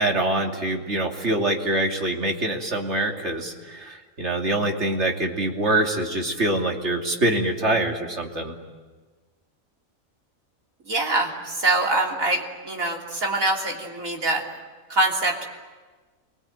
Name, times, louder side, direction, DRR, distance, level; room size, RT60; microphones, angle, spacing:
voice 1, 0.0-8.5, right 1 dB, 55° right, 1 dB, 3.1 m, -24 dB
voice 2, 10.9-14.4 14.9-15.5, right 2 dB, 80° right, 0 dB, 3.7 m, -24 dB
29.0 x 22.5 x 9.1 m, 1.4 s
omnidirectional pair, 1.4 m